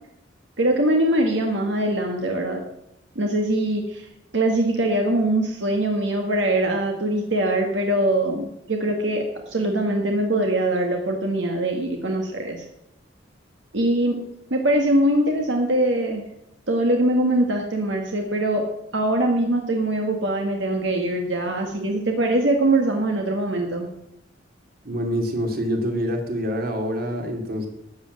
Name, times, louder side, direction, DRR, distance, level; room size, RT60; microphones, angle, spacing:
voice 1, 0.6-2.6 3.1-4.1 4.3-12.6 13.7-14.2 14.5-16.2 16.7-18.6 18.9-23.9, right 1 dB, 75° right, 2 dB, 1.6 m, -22 dB
voice 2, 24.8-27.7, equal, 55° right, 3 dB, 2.4 m, -26 dB
13.0 x 7.8 x 7.6 m, 0.84 s
head